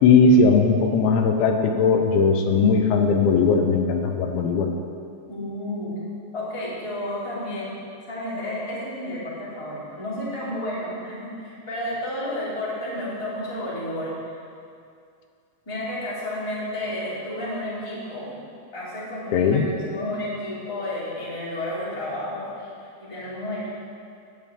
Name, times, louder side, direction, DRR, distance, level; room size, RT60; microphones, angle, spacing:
voice 1, 0.0-4.7 19.3-19.6, left 4 dB, 85° left, 4 dB, 3.2 m, -18 dB
voice 2, 5.3-5.9 6.3-7.7 8.0-14.1 15.6-18.4 18.7-22.7 23.1-23.7, left 1 dB, 10° left, -8 dB, 2.1 m, -31 dB
12.5 x 5.5 x 8.6 m, 2.4 s
omnidirectional pair, 5.3 m